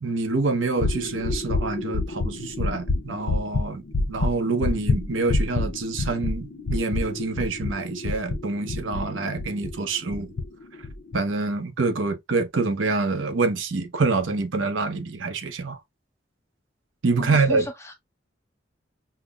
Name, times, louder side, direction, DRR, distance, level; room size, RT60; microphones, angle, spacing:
voice 1, 0.0-10.3 11.1-15.8 17.0-17.7, right 3 dB, 85° right, 0.7 m, -26 dB
sound 1, 0.8-9.8 10.1-10.4 10.8-11.2, left 2 dB, 80° left, 0.6 m, -27 dB
voice 2, 17.2-17.9, left 1 dB, 15° left, 0.7 m, -35 dB
5.7 x 2.0 x 2.3 m
head